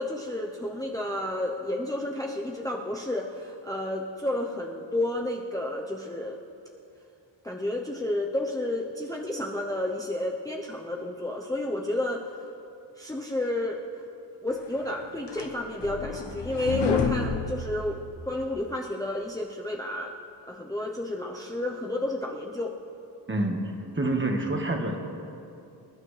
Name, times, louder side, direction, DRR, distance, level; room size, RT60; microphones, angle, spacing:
voice 1, 0.0-6.4 7.4-12.2 13.0-13.8 14.4-18.0 18.2-20.1 20.5-22.7, left 1 dB, 10° left, -1 dB, 0.7 m, -31 dB
sound 1, 14.8-18.5, left 5 dB, 70° left, 1.1 m, -30 dB
voice 2, 23.3-23.6 23.9-25.0, right 2 dB, 25° right, 2 dB, 1.4 m, -27 dB
26.0 x 11.5 x 3.3 m, 2.7 s
wide cardioid pair, 160°, 43 cm